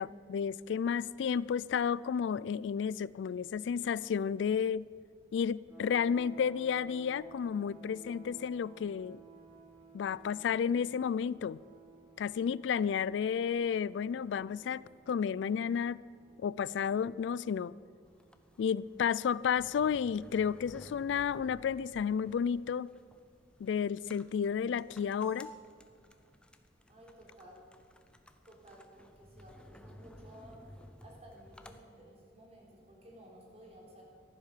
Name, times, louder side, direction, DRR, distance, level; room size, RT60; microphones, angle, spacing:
voice 1, 0.0-4.9 5.3-9.2 9.9-11.6 12.2-16.0 16.4-17.7 18.6-22.9 23.6-25.5, left 7 dB, 90° left, 0.3 m, -32 dB
sound 1, 5.7-19.5, right 5 dB, 20° right, 4.7 m, -57 dB
sound 2, 18.1-31.8, equal, 5° left, 0.7 m, -55 dB
voice 2, 26.9-27.6 28.4-34.0, right 1 dB, 35° right, 3.7 m, -55 dB
15.0 x 11.0 x 6.7 m
head